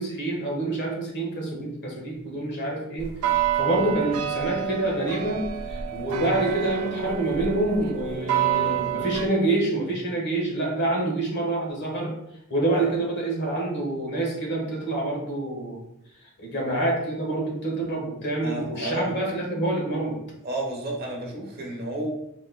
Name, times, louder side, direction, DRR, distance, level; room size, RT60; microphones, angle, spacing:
voice 1, 0.0-12.1 12.5-15.8 16.4-20.2, right 2 dB, 50° left, -1 dB, 1.4 m, -27 dB
sound 1, 3.0-9.3, right 10 dB, 70° right, 0.4 m, -28 dB
voice 2, 6.4-6.7 18.4-19.1 20.4-22.1, right 1 dB, 45° right, -1 dB, 1.0 m, -31 dB
4.3 x 4.2 x 2.2 m, 0.78 s
head